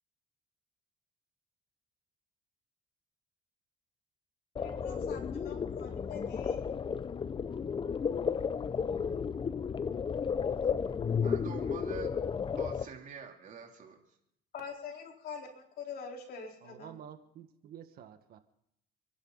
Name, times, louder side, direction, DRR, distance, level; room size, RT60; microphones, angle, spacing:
voice 1, 4.6-6.6 14.5-17.0, left 6 dB, 65° left, 1 dB, 4.1 m, -45 dB
sound 1, 4.6-12.9, left 6 dB, 30° left, 0.7 m, -33 dB
voice 2, 11.2-12.1 12.6-14.0, right 7 dB, 50° right, 2 dB, 3.2 m, -45 dB
voice 3, 16.6-18.4, right 9 dB, 65° right, 9 dB, 1.6 m, -50 dB
29.5 x 11.5 x 4.0 m, 0.75 s
cardioid pair, 110°, 17 cm